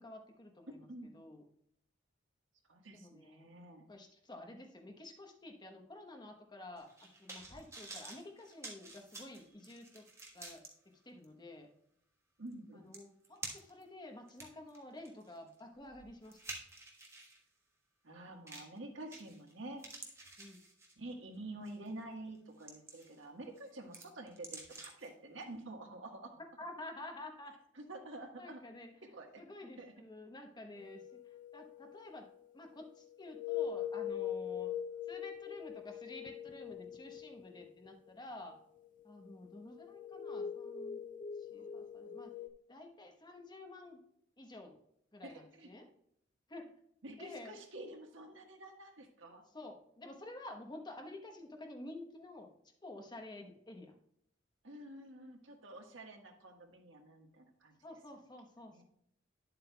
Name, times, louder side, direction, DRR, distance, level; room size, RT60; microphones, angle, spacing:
voice 1, 0.0-0.9 1.1-1.4 2.9-3.5 3.9-10.1 10.3-11.7 12.7-16.4 20.4-20.6 26.6-27.5 28.4-28.9 29.4-31.2 31.5-34.7 35.1-38.6 39.0-41.0 41.4-42.4 42.7-44.0 44.4-44.8 45.1-45.9 46.5-46.7 47.2-47.6 49.5-52.5 52.8-53.9 57.8-58.8, left 2 dB, 25° left, 4 dB, 1.0 m, -50 dB
voice 2, 0.7-1.1 2.7-3.9 12.4-12.9 18.0-19.8 21.0-26.3 27.7-28.6 29.1-29.4 29.8-29.9 45.2-45.7 47.0-49.4 54.6-57.8 58.7-58.8, right 2 dB, 80° right, 2 dB, 1.5 m, -48 dB
sound 1, 6.8-10.7 11.2-11.3 12.5-12.6 12.9-13.8 14.3-17.4 18.5-18.8 19.1-19.5 19.8-21.1 21.6-21.9 22.3-23.2 23.6-25.1 25.4-25.5, right 2 dB, 15° right, 1.4 m, -50 dB
sound 2, 30.8-32.0 33.2-37.9 38.8-38.9 39.2-42.5, left 9 dB, 45° left, 0.5 m, -42 dB
10.5 x 7.7 x 2.3 m, 0.71 s
head